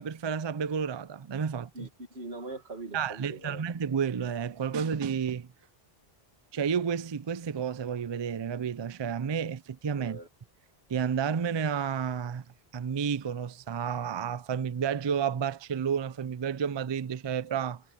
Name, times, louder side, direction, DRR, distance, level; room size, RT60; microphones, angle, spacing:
voice 1, 0.0-1.9 2.9-5.5 6.5-10.2 10.9-12.4 12.7-17.8, right 7 dB, 40° right, 0.4 m, -31 dB
voice 2, 1.7-3.6 10.0-10.3, right 2 dB, 85° right, 2.4 m, -41 dB
omnidirectional pair, 1.0 m